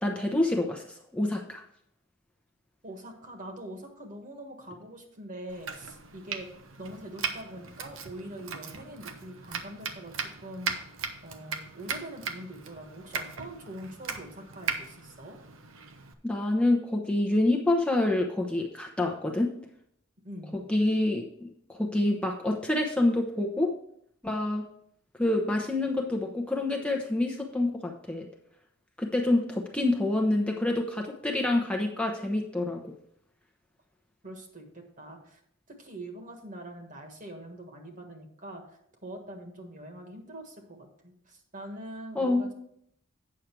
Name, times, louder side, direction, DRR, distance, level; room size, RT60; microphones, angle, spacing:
voice 1, 0.0-0.8 1.1-1.6 16.2-19.5 20.7-23.7 24.2-24.6 25.2-28.3 29.0-32.8 42.2-42.5, left 2 dB, 5° left, 0 dB, 0.8 m, -27 dB
voice 2, 2.8-10.7 11.2-15.4 20.2-20.6 34.2-35.4 35.7-38.6 39.0-42.5, right 1 dB, 40° right, 4 dB, 1.6 m, -43 dB
Domestic sounds home sounds, 5.5-16.1, right 5 dB, 80° right, 0.9 m, -38 dB
8.9 x 6.5 x 4.6 m, 0.69 s
head